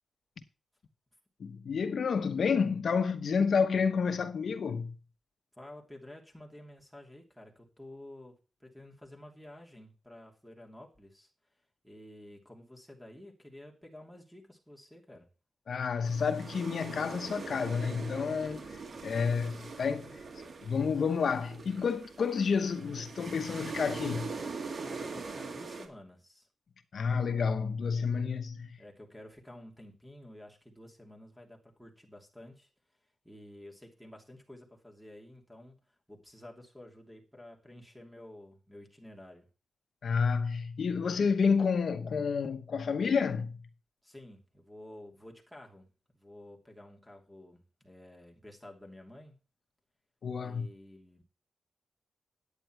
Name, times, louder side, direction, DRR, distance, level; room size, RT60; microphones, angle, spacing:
voice 1, 1.4-4.9 15.7-20.2 20.6-24.3 26.9-28.8 40.0-43.6 50.2-50.7, left 5 dB, 60° left, 0.9 m, -30 dB
voice 2, 5.5-11.3 11.8-15.3 18.6-18.7 24.8-26.5 28.8-32.7 33.2-35.8 36.1-39.5 44.0-45.9 46.1-49.4 50.4-51.2, left 1 dB, ahead, 2.9 m, -51 dB
sound 1, 16.0-25.9, right 4 dB, 55° right, 2.0 m, -42 dB
9.9 x 8.9 x 4.6 m
wide cardioid pair, 125°, 0 cm